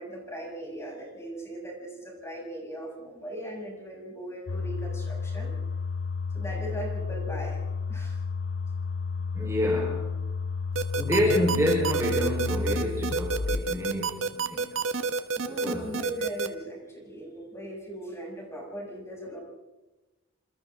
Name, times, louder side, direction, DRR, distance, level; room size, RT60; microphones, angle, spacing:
voice 1, 0.0-5.5 6.3-7.6 7.9-8.2 15.4-19.4, right 1 dB, 15° left, -2 dB, 7.1 m, -39 dB
sound 1, 4.5-13.7, left 4 dB, 85° left, 0.8 m, -32 dB
voice 2, 9.3-10.1 10.9-14.7 15.5-16.0, left 1 dB, 15° right, -2 dB, 4.1 m, -28 dB
sound 2, 10.8-16.5, right 4 dB, 70° right, 1.3 m, -28 dB
27.0 x 26.5 x 3.7 m, 1.1 s
head